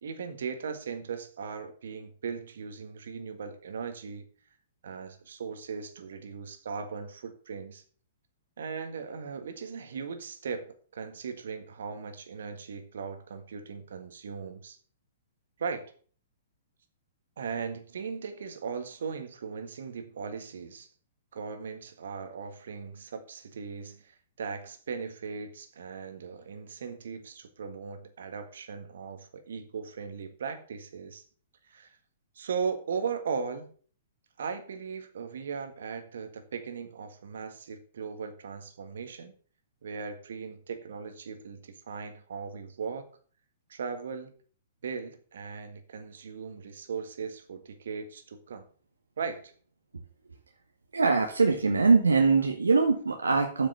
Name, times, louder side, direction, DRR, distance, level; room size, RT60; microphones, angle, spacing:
voice 1, 0.0-4.2 4.8-7.8 8.6-14.8 15.6-15.9 17.4-20.9 21.3-31.2 31.7-32.0 32.4-33.7 34.4-39.3 39.8-43.1 43.7-44.3 44.8-48.7 49.2-49.5, right 5 dB, 70° right, 1.7 m, -38 dB
voice 2, 50.9-53.7, right 4 dB, 85° right, 1.3 m, -22 dB
8.3 x 5.8 x 7.0 m
hypercardioid pair, 120°, 0 cm